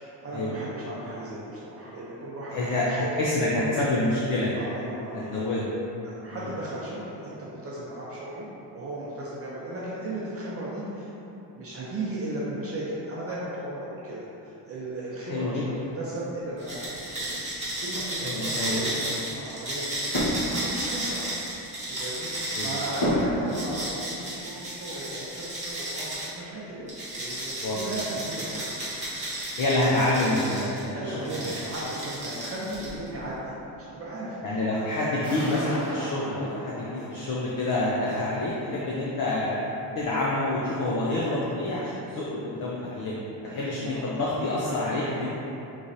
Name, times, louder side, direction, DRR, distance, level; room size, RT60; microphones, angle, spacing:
voice 1, 0.0-3.2 4.5-5.5 6.0-8.5 8.7-11.1 11.6-17.3 17.8-21.2 21.9-22.3 22.6-28.8 29.8-29.9 30.9-33.5 33.9-35.1 43.4-45.2, right 1 dB, 35° right, -7 dB, 0.5 m, -36 dB
voice 2, 2.5-4.6 5.1-5.7 6.3-6.4 15.3-15.7 18.2-18.8 22.5-22.7 27.6-27.8 29.6-31.5 34.4-43.2 43.5-45.5, left 2 dB, 50° left, -6 dB, 0.5 m, -27 dB
sound 1, 16.6-26.3 26.9-30.8 31.2-33.1, right 1 dB, 15° right, 1.1 m, -33 dB
sound 2, 17.3-17.5 20.1-20.8 21.3-21.6 23.0-23.9 24.3-24.4 26.8-27.1 27.4-28.0, equal, 65° left, 1.2 m, -29 dB
sound 3, 35.2-38.1, equal, 10° left, 1.0 m, -38 dB
5.3 x 3.1 x 2.6 m, 3.0 s
cardioid pair, 160°, 42 cm